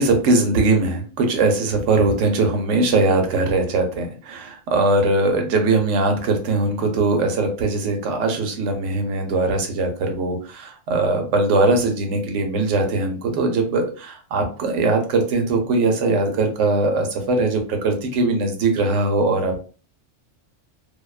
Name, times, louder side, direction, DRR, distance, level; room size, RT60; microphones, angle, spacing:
voice 1, 0.0-19.6, right 3 dB, 70° right, 4 dB, 0.9 m, -20 dB
2.5 x 2.2 x 2.3 m, 0.38 s
omnidirectional pair, 1.3 m